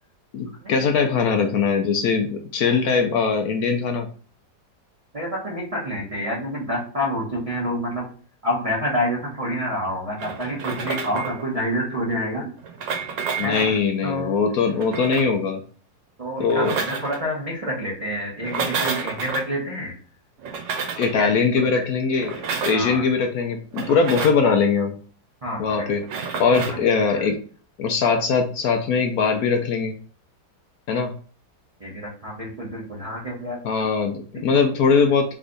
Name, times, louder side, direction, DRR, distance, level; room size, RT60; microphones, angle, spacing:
voice 1, 0.3-4.1 13.4-15.6 16.4-16.7 21.0-22.4 22.6-25.0 25.6-26.0 26.4-27.4 27.8-29.9 30.9-31.1 33.6-35.3, left 5 dB, 70° left, 4 dB, 0.9 m, -21 dB
voice 2, 5.1-8.1 8.4-12.5 13.4-14.4 16.2-20.0 21.1-21.8 22.7-23.1 24.4-24.5 25.4-25.9 26.5-27.3 31.8-33.6, equal, 30° right, -4 dB, 0.7 m, -28 dB
sound 1, 10.2-11.4 12.6-13.7 14.7-15.4 16.4-17.2 18.4-19.5 20.4-21.1 22.1-22.9 23.7-24.4 26.0-26.8, right 5 dB, 90° right, 1.5 m, -30 dB
3.5 x 3.2 x 3.8 m, 0.43 s
omnidirectional pair, 1.9 m